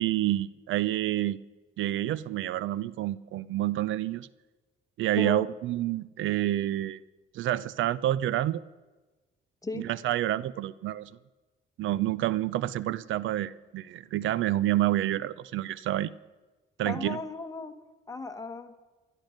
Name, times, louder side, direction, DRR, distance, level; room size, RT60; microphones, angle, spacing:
voice 1, 0.0-1.4 1.8-4.3 5.0-7.0 7.3-8.6 9.7-11.1 11.8-16.1 16.8-17.2, right 14 dB, 75° right, 19 dB, 0.5 m, -28 dB
voice 2, 16.8-17.7 18.1-18.7, left 3 dB, 15° left, 6 dB, 1.5 m, -35 dB
16.5 x 12.0 x 6.5 m, 1.2 s
cardioid pair, 90°, 20 cm